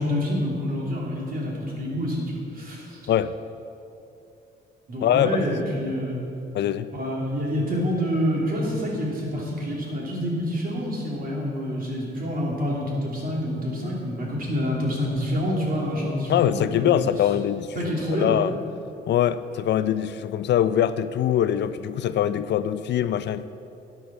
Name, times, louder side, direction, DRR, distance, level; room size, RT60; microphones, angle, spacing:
voice 1, 0.0-3.0 4.9-6.2 6.9-16.9 17.7-18.4, equal, 45° right, -3 dB, 3.2 m, -27 dB
voice 2, 5.0-5.3 6.5-6.9 16.3-18.6 19.1-23.5, left 10 dB, 60° left, 13 dB, 0.4 m, -23 dB
13.5 x 9.2 x 4.4 m, 2.8 s
cardioid pair, 90°, 20 cm